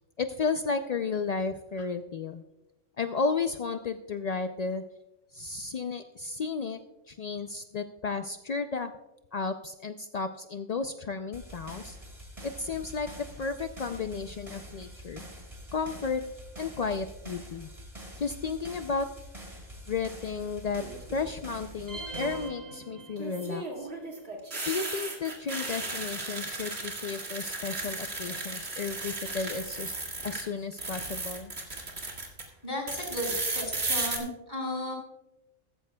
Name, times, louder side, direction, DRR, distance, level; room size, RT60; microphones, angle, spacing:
voice 1, 0.2-2.4 3.0-4.8 5.3-6.8 7.1-8.9 9.3-12.0 12.4-15.3 15.7-16.2 16.6-17.7 18.2-19.1 19.9-20.8 21.1-23.9 24.7-29.9 30.2-31.5, left 4 dB, 65° left, 8 dB, 0.3 m, -33 dB
sound 1, 11.3-22.5, equal, 25° right, 2.3 m, -46 dB
sound 2, 20.8-21.3 23.2-30.4 30.7-32.4 32.9-34.2, right 2 dB, 50° right, 2.5 m, -35 dB
sound 3, 21.9-23.7, right 2 dB, 80° right, 4.5 m, -41 dB
voice 2, 32.6-34.9, left 1 dB, 35° left, -2 dB, 5.1 m, -34 dB
15.5 x 14.5 x 2.3 m, 0.97 s
omnidirectional pair, 1.3 m